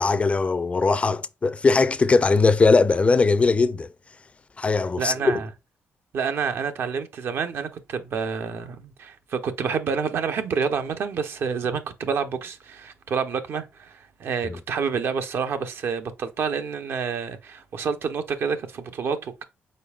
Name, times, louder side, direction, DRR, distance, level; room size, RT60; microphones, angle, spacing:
voice 1, 0.0-3.9 4.6-5.3 14.4-14.6, left 4 dB, 30° left, 0.4 m, -20 dB
voice 2, 5.0-5.5 6.1-19.4, right 6 dB, 65° right, 0.8 m, -28 dB
5.3 x 4.2 x 2.3 m
cardioid pair, 100°, 4 cm